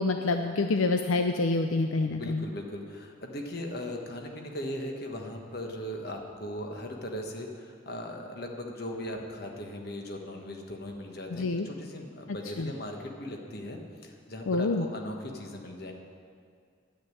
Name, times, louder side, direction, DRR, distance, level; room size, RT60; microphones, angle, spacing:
voice 1, 0.0-2.4 11.3-11.7 12.6-12.7 14.5-14.9, left 3 dB, 90° left, 6 dB, 0.6 m, -27 dB
voice 2, 2.0-15.9, left 1 dB, 50° left, 2 dB, 1.4 m, -38 dB
10.5 x 8.5 x 9.7 m, 2.1 s
head